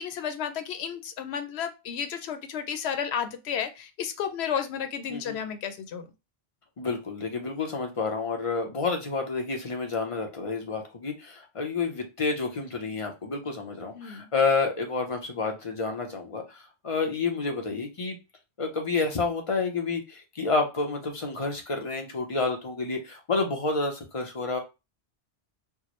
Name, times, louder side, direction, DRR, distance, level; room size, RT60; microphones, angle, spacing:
voice 1, 0.0-6.1 13.9-14.3, left 8 dB, 80° left, 8 dB, 0.9 m, -32 dB
voice 2, 6.8-18.2 18.6-24.6, left 4 dB, 35° left, 3 dB, 0.7 m, -29 dB
4.6 x 2.1 x 3.0 m, 0.27 s
omnidirectional pair, 1.1 m